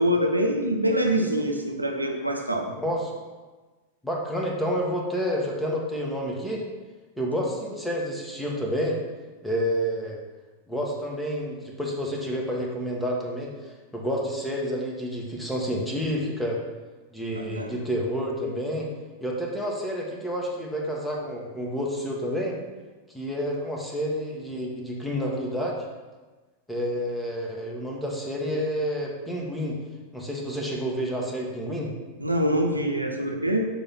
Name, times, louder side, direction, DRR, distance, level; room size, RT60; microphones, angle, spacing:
voice 1, 0.0-2.7 17.3-17.7 32.2-33.7, equal, 85° right, 2 dB, 0.7 m, -25 dB
voice 2, 2.8-3.1 4.0-6.6 7.2-9.0 9.4-10.2 10.7-13.5 13.9-16.6 17.1-18.9 19.2-22.6 23.1-25.9 26.7-29.8 30.1-31.9, equal, 5° left, -2 dB, 1.2 m, -29 dB
6.8 x 3.0 x 5.6 m, 1.3 s
figure-of-eight pair, 90°, 0 cm